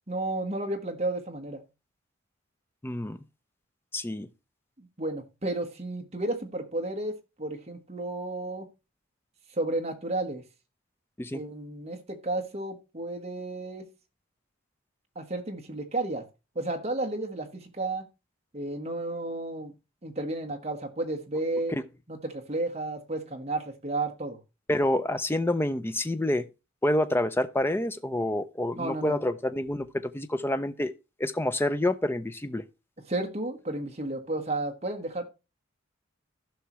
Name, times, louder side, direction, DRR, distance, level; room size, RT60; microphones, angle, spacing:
voice 1, 0.1-1.6 4.8-7.1 7.4-8.7 9.6-10.4 11.3-13.8 15.1-16.2 16.5-18.0 18.5-19.7 20.0-21.7 22.1-24.4 28.7-29.2 33.1-35.2, right 2 dB, 30° right, 1.3 m, -32 dB
voice 2, 2.8-3.2 3.9-4.3 11.2-11.4 21.7-21.8 24.7-26.5 26.8-30.9 31.2-32.6, left 1 dB, 10° left, 0.4 m, -28 dB
15.0 x 5.7 x 3.0 m
head